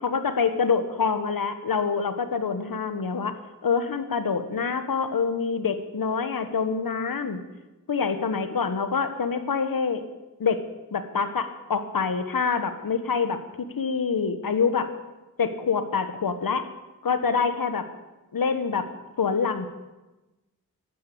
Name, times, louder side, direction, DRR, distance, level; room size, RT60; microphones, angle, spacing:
voice 1, 0.0-3.3 3.6-7.4 7.9-10.0 10.4-10.6 10.9-14.9 15.4-16.6 17.0-17.8 18.3-18.9 19.2-19.7, left 5 dB, 75° left, 10 dB, 1.3 m, -26 dB
12.5 x 10.5 x 8.6 m, 1.1 s
wide cardioid pair, 75°, 35 cm